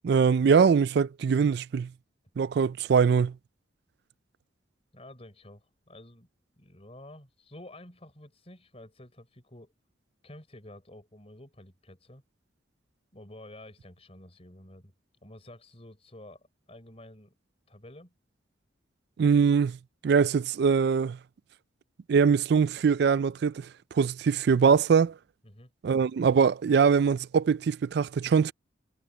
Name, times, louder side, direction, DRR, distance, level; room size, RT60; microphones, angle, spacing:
voice 1, 0.0-1.9 2.4-3.3 19.2-19.8 20.0-21.2 22.1-23.7 23.9-25.1 25.8-28.5, right 6 dB, 60° right, 0.3 m, -22 dB
voice 2, 4.9-6.3 6.6-9.7 10.2-12.2 13.1-14.9 15.2-17.3 17.7-18.2 25.4-25.7, left 1 dB, 30° left, 4.6 m, -50 dB
head